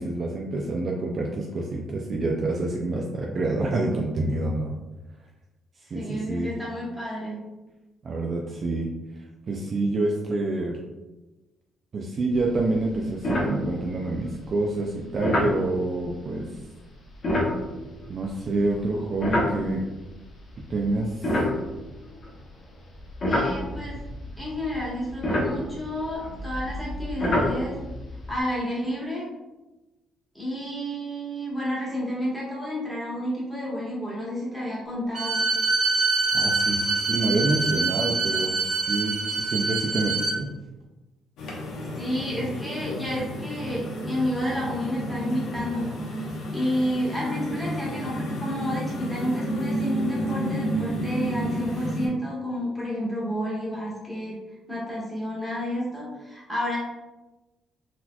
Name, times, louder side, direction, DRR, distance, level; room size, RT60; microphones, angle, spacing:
voice 1, 0.0-4.7 5.9-6.5 8.0-8.9 9.5-10.8 11.9-16.5 18.1-19.8 20.7-21.3 36.3-40.5, right 2 dB, 35° right, 0 dB, 0.3 m, -27 dB
voice 2, 5.9-7.4 23.3-24.0 24.4-27.7 28.3-29.2 30.3-35.4 42.0-45.9 46.5-54.4 54.7-56.8, equal, ahead, -7 dB, 1.2 m, -30 dB
sound 1, 12.4-12.6 12.9-13.0 13.2-14.1 15.2-15.6 17.1-20.0 20.6-22.4 22.9-28.4, left 1 dB, 40° left, 0.9 m, -28 dB
Bowed string instrument, 35.1-40.4, right 3 dB, 60° right, 0.7 m, -25 dB
sound 2, 41.4-52.1, right 1 dB, 80° left, 0.8 m, -31 dB
4.0 x 2.8 x 2.2 m, 1.1 s
cardioid pair, 150°, 0 cm